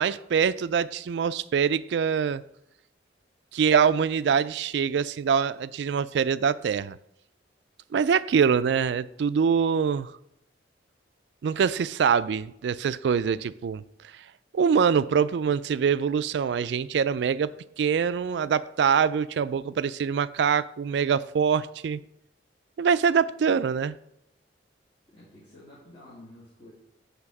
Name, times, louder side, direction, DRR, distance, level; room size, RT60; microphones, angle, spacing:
voice 1, 0.0-2.4 3.5-7.0 7.9-10.1 11.4-13.8 14.5-17.5 17.8-22.0 22.8-24.0, right 6 dB, 70° right, 15 dB, 0.3 m, -24 dB
voice 2, 25.1-26.7, left 1 dB, 30° left, -8 dB, 1.8 m, -50 dB
7.7 x 3.4 x 6.0 m, 0.78 s
head